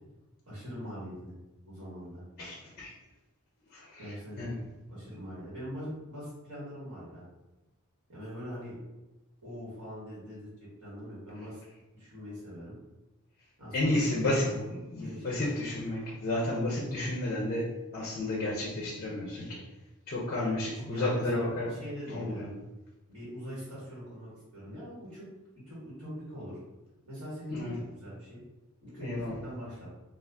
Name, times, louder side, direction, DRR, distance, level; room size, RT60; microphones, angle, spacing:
voice 1, 0.5-1.3 1.6-2.2 4.0-4.5 4.9-7.2 8.1-8.8 9.4-10.5 10.8-11.6 11.9-12.7 13.6-14.7 14.9-15.5 20.4-20.6 20.9-22.5 23.1-25.3 25.6-26.6 27.1-28.4 28.8-29.9, equal, 70° right, -9 dB, 1.3 m, -42 dB
voice 2, 2.4-2.9 3.7-4.5 13.7-14.6 14.9-19.6 20.1-21.7 22.1-22.4 27.5-27.8 29.0-29.4, left 1 dB, 40° left, -3 dB, 0.5 m, -32 dB
2.5 x 2.4 x 3.3 m, 1.1 s
head